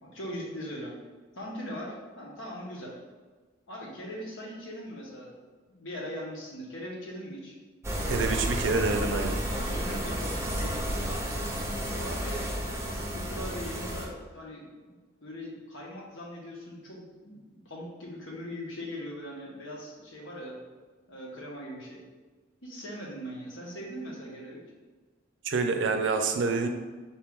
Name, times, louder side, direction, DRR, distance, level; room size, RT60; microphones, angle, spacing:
voice 1, 0.0-0.9 1.4-3.0 3.7-5.3 5.7-7.6 9.5-11.2 11.9-17.4 17.6-20.6 21.1-22.0 22.6-24.6, equal, 80° left, -3 dB, 1.1 m, -40 dB
sound 1, 7.8-14.1, equal, 15° right, 0.5 m, -31 dB
voice 2, 8.1-9.4 25.4-26.7, right 4 dB, 70° right, 5 dB, 0.4 m, -27 dB
4.3 x 3.0 x 3.6 m, 1.4 s
head